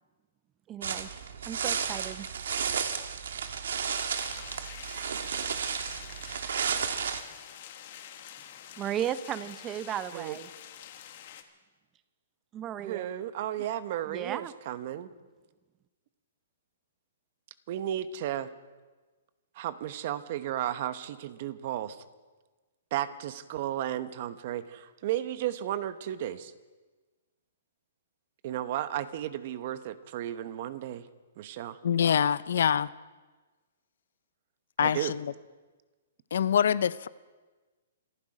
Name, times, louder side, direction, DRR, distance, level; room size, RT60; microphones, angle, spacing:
voice 1, 0.7-1.1 1.5-2.3 8.8-10.5 12.5-13.1 14.1-14.5, right 10 dB, 20° right, 0.7 m, -35 dB
sound 1, 0.8-7.2, right 7 dB, 75° right, 1.5 m, -33 dB
sound 2, 4.0-11.4, left 10 dB, 50° left, 1.5 m, -47 dB
voice 2, 12.8-15.1 17.7-18.5 19.6-22.0 22.9-26.5 28.4-31.0 31.4-31.8 34.8-35.1, right 12 dB, 50° right, 1.0 m, -34 dB
voice 3, 31.8-32.9 34.8-35.3 36.3-37.1, left 8 dB, 70° left, 0.5 m, -25 dB
27.0 x 10.5 x 5.0 m
hypercardioid pair, 145°, 0 cm